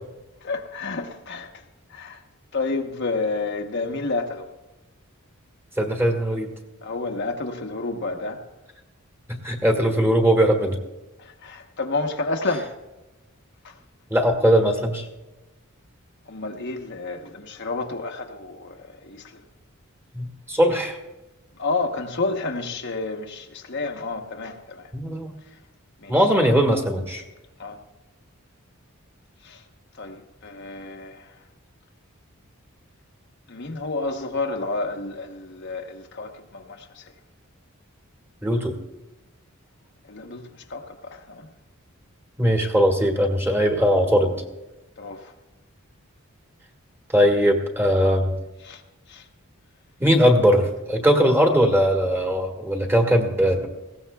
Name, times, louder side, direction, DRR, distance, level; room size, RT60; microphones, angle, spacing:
voice 1, 0.4-1.6 1.9-2.2 2.5-4.5 6.8-8.4 11.2-12.7 13.6-13.7 16.3-19.4 21.6-24.9 26.0-26.1 27.6-27.8 29.4-29.6 30.0-31.4 33.5-37.0 40.0-41.5 45.0-45.3 48.6-48.8 49.1-49.2, left 3 dB, 55° left, 1.0 m, -30 dB
voice 2, 5.8-6.5 9.4-10.8 14.1-15.0 20.1-21.0 24.9-25.3 26.1-27.2 38.4-38.8 42.4-44.4 47.1-48.3 50.0-53.7, equal, 10° right, 1.6 m, -20 dB
20.0 x 16.5 x 2.3 m
head